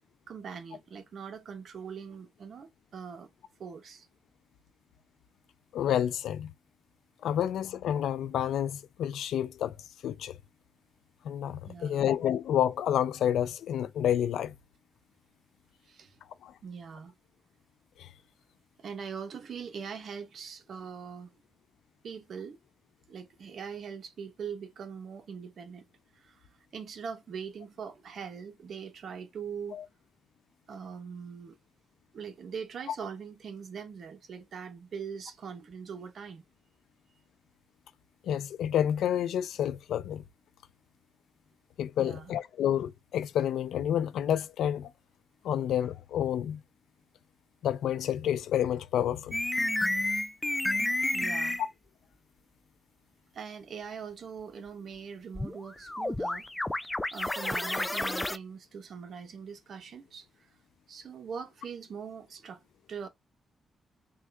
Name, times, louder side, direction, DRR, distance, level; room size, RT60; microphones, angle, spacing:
voice 1, 0.3-3.3 3.6-4.1 11.6-12.0 15.9-16.2 16.6-17.1 18.8-21.3 22.0-22.6 23.1-25.8 26.1-26.5 26.7-29.8 30.7-31.6 32.1-36.4 42.0-42.3 51.1-51.6 53.3-56.5 57.1-60.5 60.9-62.6 62.9-63.1, right 6 dB, 60° right, 0.8 m, -42 dB
voice 2, 5.7-6.5 7.2-9.8 10.0-10.4 11.2-14.5 16.4-16.5 18.0-18.1 29.7-29.8 38.2-40.2 41.8-44.9 45.4-46.6 47.6-49.4, left 10 dB, 90° left, 0.4 m, -29 dB
sound 1, 49.3-51.7 55.4-58.4, left 1 dB, 10° left, 0.3 m, -30 dB
3.6 x 2.3 x 3.3 m
cardioid pair, 100°, 0 cm